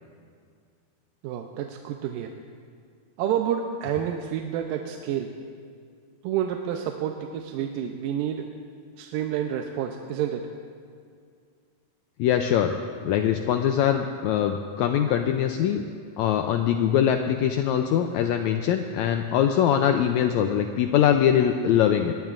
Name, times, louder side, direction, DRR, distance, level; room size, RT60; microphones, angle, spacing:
voice 1, 1.2-2.3 3.2-5.3 6.2-8.5 9.0-10.5, right 9 dB, 90° right, 4 dB, 2.4 m, -29 dB
voice 2, 12.2-12.7 13.0-15.8 16.2-22.1, left 9 dB, 85° left, 5 dB, 1.6 m, -22 dB
20.5 x 18.5 x 2.5 m, 2.2 s
omnidirectional pair, 3.8 m